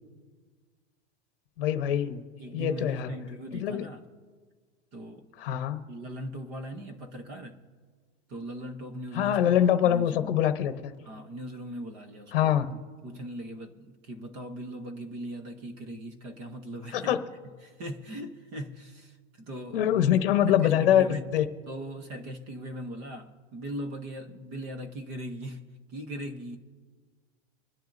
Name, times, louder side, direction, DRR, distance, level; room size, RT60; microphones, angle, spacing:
voice 1, 1.6-2.2 2.5-3.1 3.5-3.9 5.4-5.8 9.1-10.9 12.3-12.7 16.9-17.2 19.7-21.4, left 10 dB, 55° left, 1.0 m, -24 dB
voice 2, 2.4-4.1 4.9-5.3 5.9-7.6 8.3-10.5 11.0-17.2 17.6-20.1 20.5-21.3 21.7-25.6 25.9-26.6, right 1 dB, 20° right, 0.8 m, -40 dB
26.0 x 10.0 x 2.6 m
supercardioid pair, 180°, 34 cm